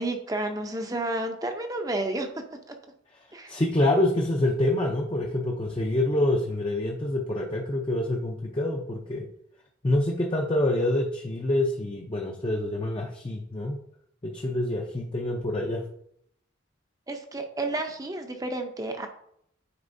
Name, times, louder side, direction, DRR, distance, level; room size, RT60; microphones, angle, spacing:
voice 1, 0.0-2.3 2.7-2.8 3.3-3.6 17.1-19.1, right 2 dB, 20° right, 5 dB, 0.6 m, -31 dB
voice 2, 3.5-9.3 9.8-13.8 14.2-15.8, left 1 dB, 25° left, 0 dB, 0.5 m, -26 dB
9.6 x 4.5 x 2.6 m, 0.71 s
head